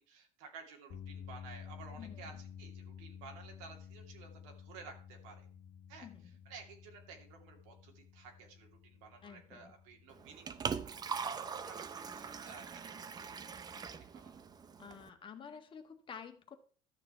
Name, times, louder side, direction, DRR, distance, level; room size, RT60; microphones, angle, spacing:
voice 1, 0.0-5.5 5.9-14.4, right 5 dB, 85° right, 2 dB, 2.6 m, -55 dB
sound 1, 0.9-15.2, left 8 dB, 55° left, 1.7 m, -53 dB
voice 2, 2.0-2.4 6.0-6.4 9.2-9.7 14.8-16.6, left 7 dB, 35° left, 7 dB, 1.5 m, -50 dB
Liquid, 10.1-15.1, right 6 dB, 25° right, 0.7 m, -42 dB
12.0 x 6.9 x 4.4 m, 0.42 s
cardioid pair, 120°, 15 cm